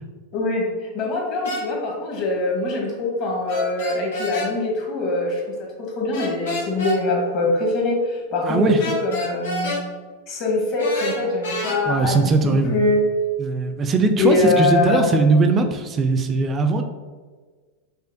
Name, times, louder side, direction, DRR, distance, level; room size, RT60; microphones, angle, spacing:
voice 1, 0.3-9.8 10.3-13.0 14.2-15.1, left 2 dB, 50° left, -1 dB, 1.1 m, -23 dB
sound 1, 1.4-1.6 3.5-4.5 6.1-7.0 8.8-9.8 10.8-11.8, left 1 dB, 85° left, 1.1 m, -28 dB
voice 2, 8.4-8.8 11.9-12.8 13.4-16.8, right 3 dB, 30° right, 6 dB, 0.4 m, -20 dB
5.1 x 2.1 x 2.6 m, 1.4 s
hypercardioid pair, 110°, 0 cm